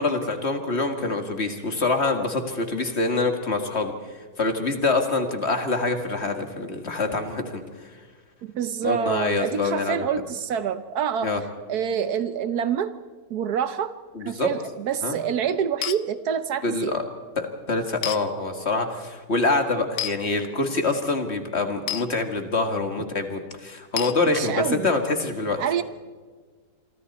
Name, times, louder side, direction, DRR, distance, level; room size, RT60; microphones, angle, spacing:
voice 1, 0.0-7.9 8.8-10.0 11.2-11.4 14.1-14.5 15.0-15.2 16.6-17.0 17.4-25.6, left 3 dB, 40° left, 6 dB, 2.0 m, -25 dB
voice 2, 8.4-11.3 11.7-12.9 13.3-13.9 14.2-17.0 24.3-24.9 25.6-25.8, right 8 dB, 70° right, 12 dB, 1.3 m, -27 dB
sound 1, 15.8-16.0 18.0-18.2 20.0-20.2 21.9-22.1 24.0-24.2, left 11 dB, 65° left, 1.2 m, -28 dB
27.5 x 23.5 x 4.2 m, 1.5 s
omnidirectional pair, 1.8 m